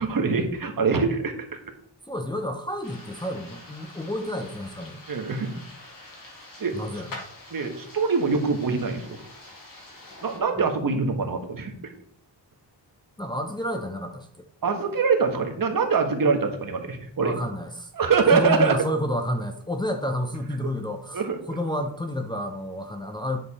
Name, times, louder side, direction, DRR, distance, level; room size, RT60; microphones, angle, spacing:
voice 1, 0.0-1.6 5.1-5.5 6.6-6.7 7.5-9.2 10.2-11.9 14.6-17.3 17.9-18.7 21.1-21.6, right 5 dB, 50° right, 4 dB, 1.6 m, -24 dB
voice 2, 2.1-5.0 6.7-7.3 10.5-10.7 13.2-14.4 17.2-17.9 18.2-23.4, left 1 dB, 10° left, 3 dB, 0.8 m, -30 dB
sound 1, 2.8-10.4, left 2 dB, 50° left, 2.7 m, -45 dB
9.8 x 6.6 x 4.3 m, 0.65 s
wide cardioid pair, 145°, 44 cm